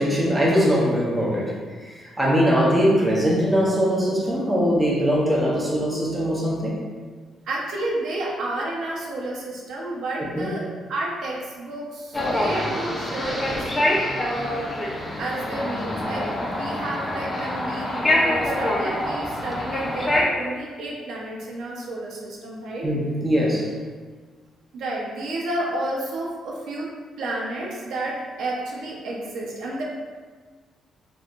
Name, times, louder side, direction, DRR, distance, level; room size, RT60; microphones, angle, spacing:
voice 1, 0.0-6.8 10.4-10.5 22.8-23.7, equal, 10° right, -5 dB, 0.8 m, -21 dB
voice 2, 7.4-14.7 15.2-22.9 24.7-26.9 27.2-29.8, right 1 dB, 75° right, -3 dB, 0.7 m, -31 dB
sound 1, 12.1-20.2, left 1 dB, 25° left, 0.6 m, -25 dB
3.1 x 3.0 x 2.5 m, 1.5 s
cardioid pair, 90°, 0 cm